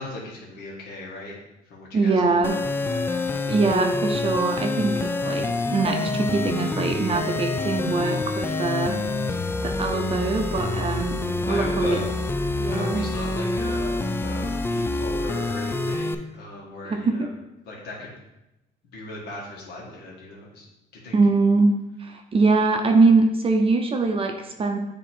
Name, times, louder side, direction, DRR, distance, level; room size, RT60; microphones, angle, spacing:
voice 1, 0.0-1.4 1.7-2.4 2.9-3.1 9.1-9.5 11.5-12.1 12.7-17.3 17.7-18.1 18.9-20.7 20.9-21.1, left 2 dB, 75° left, -3 dB, 1.7 m, -37 dB
voice 2, 1.9-2.7 3.1-9.0 9.6-12.0 12.6-13.0 16.8-17.3 21.1-21.7 22.0-24.8, right 3 dB, 35° right, 4 dB, 0.7 m, -23 dB
sound 1, 2.4-16.1, left 2 dB, 15° left, 0.4 m, -27 dB
7.3 x 3.0 x 4.5 m, 0.94 s
cardioid pair, 110°, 17 cm